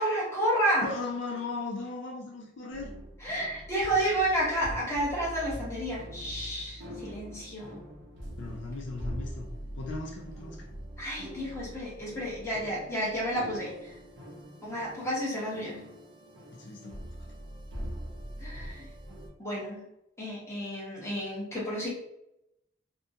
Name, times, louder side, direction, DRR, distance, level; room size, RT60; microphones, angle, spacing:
voice 1, 0.0-0.9 3.2-7.8 11.0-13.9 14.6-15.8 18.4-18.9 19.4-19.8 20.2-21.9, right 1 dB, 15° left, -6 dB, 0.9 m, -31 dB
voice 2, 0.8-2.9 8.4-9.5 9.8-10.7 16.5-17.0, left 3 dB, 60° left, 0 dB, 0.4 m, -37 dB
sound 1, 2.7-19.3, equal, 60° right, 0.7 m, -43 dB
2.5 x 2.2 x 2.6 m, 0.83 s
head